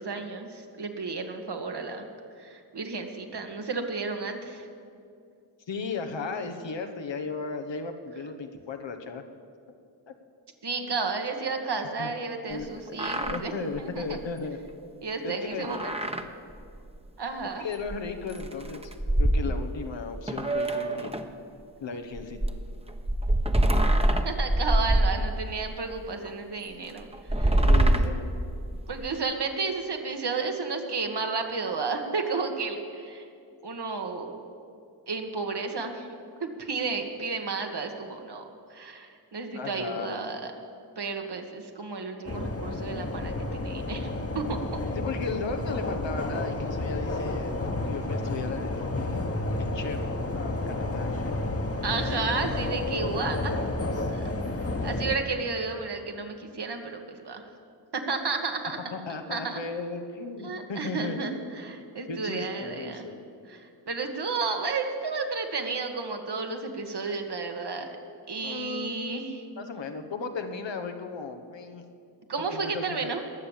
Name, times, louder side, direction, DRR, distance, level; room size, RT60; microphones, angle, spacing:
voice 1, 0.0-2.1 2.4-4.6 10.6-13.5 13.8-14.2 15.0-16.0 17.2-17.7 24.3-27.1 27.4-27.6 28.9-33.3 33.6-34.4 35.1-36.1 36.4-38.4 38.7-40.5 41.0-44.1 44.3-44.6 51.8-53.5 54.0-54.2 54.8-57.4 57.9-58.8 59.3-59.6 60.4-63.1 63.5-68.0 68.3-69.4 72.3-73.2, right 4 dB, 65° right, 4 dB, 1.7 m, -32 dB
voice 2, 5.7-9.2 10.1-10.2 10.8-10.9 12.0-12.1 12.4-14.6 15.2-15.7 17.6-18.9 19.2-21.1 21.8-22.4 26.6-27.2 27.4-28.4 39.5-40.3 44.9-49.2 49.6-50.0 50.3-51.7 58.9-61.2 62.1-63.2 68.4-69.2 69.6-71.8 72.4-73.1, left 4 dB, 75° left, 6 dB, 1.2 m, -36 dB
sound 1, 12.6-12.7 12.9-13.4 13.8-13.9 14.1-14.3 15.6-16.3 16.6-16.7 17.9-18.0 18.3-19.9 20.3-21.3 22.1-25.7 26.2-26.3 27.1-29.1, right 1 dB, 15° right, 1.1 m, -24 dB
sound 2, 42.2-55.2, left 2 dB, 30° left, 1.4 m, -31 dB
20.5 x 7.0 x 7.4 m, 2.4 s
cardioid pair, 40°, 44 cm